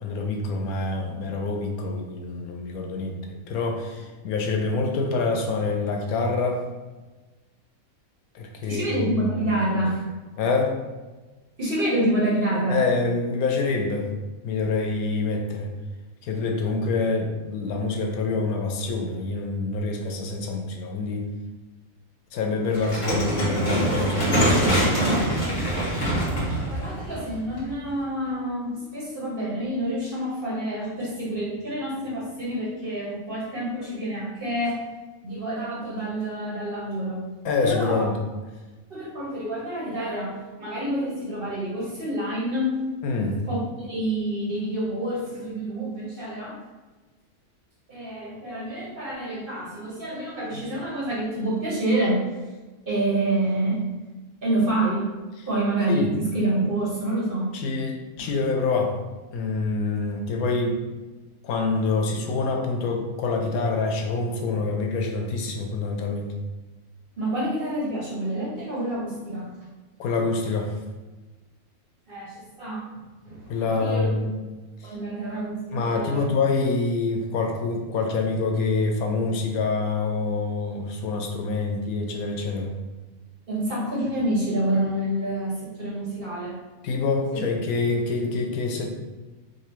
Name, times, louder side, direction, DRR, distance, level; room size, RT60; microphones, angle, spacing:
voice 1, 0.0-6.6 8.3-9.0 10.4-10.7 12.7-14.1 14.4-15.7 16.2-21.3 22.3-25.2 37.4-38.1 43.0-43.4 55.9-56.1 57.5-59.0 59.3-60.8 61.4-66.3 70.0-70.7 73.5-74.3 74.8-74.9 75.7-82.7 86.8-88.9, left 3 dB, 80° left, 3 dB, 1.1 m, -26 dB
voice 2, 8.7-10.0 11.6-12.8 26.7-34.8 35.2-37.2 37.6-38.1 38.9-42.8 43.5-46.6 47.9-52.2 52.9-53.8 54.4-55.0 55.5-57.5 67.2-69.5 72.1-72.9 73.2-74.1 74.8-76.3 83.5-86.6 87.3-87.4, right 1 dB, 40° right, -6 dB, 1.4 m, -27 dB
sound 1, 22.7-27.9, right 1 dB, 35° left, 1.1 m, -24 dB
5.0 x 2.6 x 3.0 m, 1.2 s
omnidirectional pair, 1.5 m